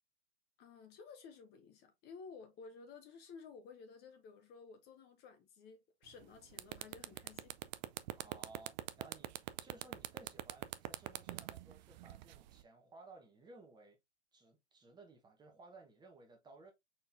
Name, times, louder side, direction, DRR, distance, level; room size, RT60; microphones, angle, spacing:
voice 1, 0.6-7.6, left 5 dB, 30° left, 0.9 m, -54 dB
sound 1, 6.1-6.2 6.5-12.6, right 16 dB, 45° right, 0.4 m, -43 dB
voice 2, 8.1-14.0 14.3-16.7, right 3 dB, 15° right, 1.0 m, -58 dB
4.5 x 4.0 x 2.5 m
hypercardioid pair, 125°, 33 cm